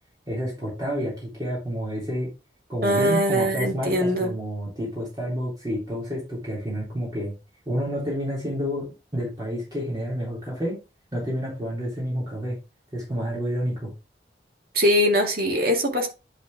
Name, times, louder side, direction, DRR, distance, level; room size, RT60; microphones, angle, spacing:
voice 1, 0.3-2.3 2.7-7.3 7.7-8.8 9.1-10.8 11.1-12.6 12.9-13.9, equal, 20° right, 3.7 m, -29 dB
voice 2, 2.8-4.3 14.7-16.1, equal, 55° right, 2.4 m, -22 dB
10.5 x 4.5 x 3.6 m
head